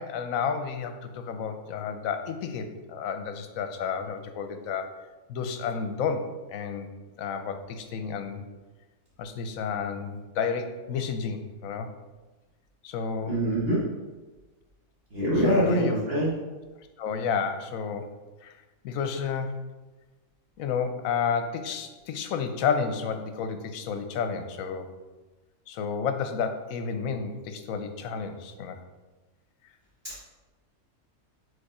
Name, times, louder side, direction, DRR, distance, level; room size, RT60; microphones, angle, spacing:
voice 1, 0.0-4.9 5.3-6.9 7.2-8.4 9.2-11.9 12.8-13.3 15.4-15.9 17.0-18.2 18.4-18.5 18.8-19.6 20.6-24.9 25.7-28.8, left 6 dB, 75° left, 7 dB, 1.0 m, -31 dB
voice 2, 13.3-13.8 15.1-16.3 30.0-30.3, equal, 45° right, -7 dB, 1.3 m, -24 dB
5.1 x 4.1 x 4.8 m, 1.2 s
omnidirectional pair, 1.5 m